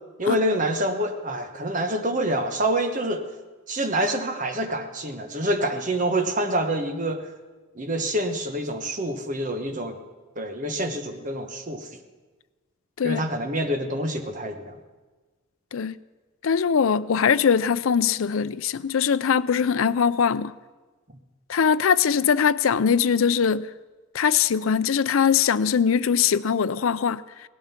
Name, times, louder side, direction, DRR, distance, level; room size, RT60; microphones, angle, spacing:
voice 1, 0.2-3.2 3.7-7.3 7.7-10.0 10.3-11.9 13.0-14.8, right 1 dB, 40° right, 1.3 m, -26 dB
voice 2, 16.4-20.5 21.5-23.7 24.1-27.5, left 7 dB, 75° left, 0.5 m, -21 dB
18.0 x 13.0 x 5.9 m
head